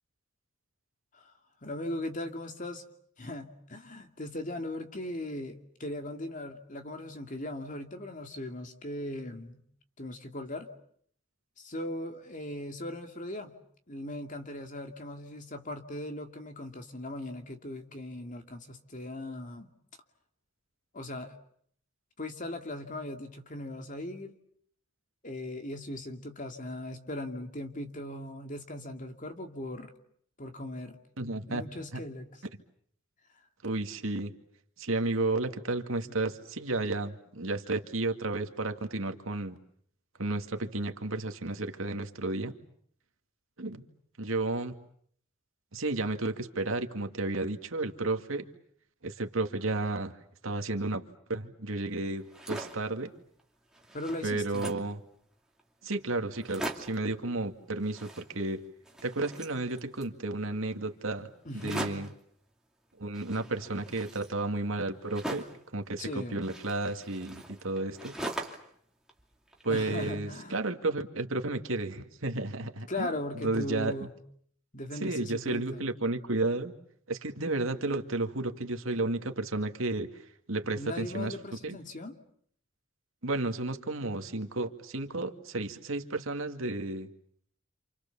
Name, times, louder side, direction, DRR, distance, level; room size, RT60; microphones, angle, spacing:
voice 1, 1.6-2.9 3.2-9.6 10.0-10.7 11.6-13.5 13.9-19.7 20.9-21.3 22.2-24.4 25.2-29.9 30.4-31.0 31.5-32.3 36.1-36.2 53.9-54.7 61.4-62.0 66.0-66.4 69.7-70.6 72.9-74.1 74.7-75.9 80.7-82.1, left 1 dB, 40° left, 5 dB, 2.6 m, -39 dB
voice 2, 31.2-31.6 31.9-32.0 33.6-34.3 34.8-39.6 40.2-42.5 43.6-43.8 44.2-44.7 45.7-48.5 49.0-50.2 50.4-51.0 51.3-53.1 54.2-55.0 55.8-58.6 59.0-61.3 61.5-62.1 63.0-65.4 65.7-68.2 69.6-73.1 73.3-73.9 75.0-76.7 77.1-80.1 80.5-81.4 81.6-81.8 83.2-87.1, right 2 dB, 80° right, 6 dB, 2.3 m, -32 dB
sound 1, 52.2-52.9 53.4-53.5 53.7-54.9 55.6-55.7 55.9-56.0 56.3-57.1 57.8-58.6 58.8-60.2 61.5-62.2 63.1-65.7 66.4-68.8 69.1-70.0, right 1 dB, 5° right, 2.7 m, -41 dB
29.0 x 28.0 x 7.1 m, 0.65 s
head